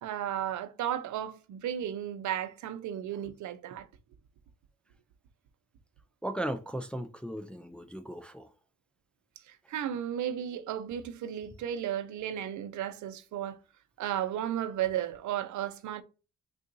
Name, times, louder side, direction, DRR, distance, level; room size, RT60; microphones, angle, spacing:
voice 1, 0.0-3.9 9.5-13.6 14.0-16.0, right 10 dB, 75° right, 0.6 m, -34 dB
voice 2, 6.2-8.5, right 1 dB, 5° left, 0.3 m, -36 dB
3.7 x 2.4 x 2.6 m
cardioid pair, 90°, 30 cm